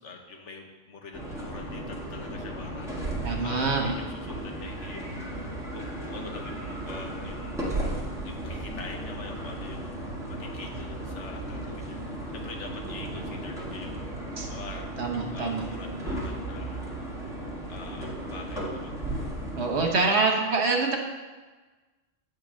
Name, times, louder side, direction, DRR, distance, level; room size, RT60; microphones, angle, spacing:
voice 1, 0.0-5.5 5.7-7.6 8.2-14.0 14.5-14.8 15.3-16.8 17.7-19.0, left 3 dB, 85° left, 2 dB, 1.4 m, -45 dB
sound 1, 1.1-19.9, right 1 dB, 5° right, 1.4 m, -35 dB
voice 2, 3.2-4.0 14.4-14.5 15.0-15.6 19.6-21.0, right 3 dB, 70° right, 2 dB, 1.4 m, -25 dB
8.2 x 4.6 x 6.4 m, 1.3 s
omnidirectional pair, 1.2 m